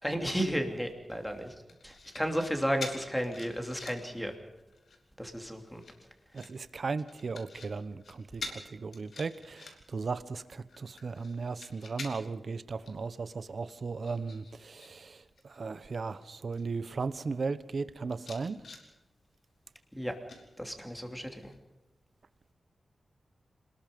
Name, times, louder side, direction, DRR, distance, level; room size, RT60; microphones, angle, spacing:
voice 1, 0.0-1.5 1.8-4.3 5.2-5.8 20.0-20.1 20.6-21.5, equal, ahead, 4 dB, 3.1 m, -33 dB
sound 1, 1.7-2.5 2.8-4.1 4.6-5.0 5.7-6.5 7.1-7.7 8.0-8.1 8.4-8.6 8.9-10.0 10.5-12.4 12.9-13.0 13.3-14.9 15.2-15.6 16.2-16.3 16.5-17.2 17.7-17.8 18.1-18.8 20.3-21.0 21.4-21.6, left 4 dB, 70° left, 3.6 m, -46 dB
voice 2, 6.3-15.2 15.5-18.6, right 4 dB, 50° right, 14 dB, 1.1 m, -36 dB
27.0 x 20.5 x 5.4 m, 1.0 s
wide cardioid pair, 160°, 0 cm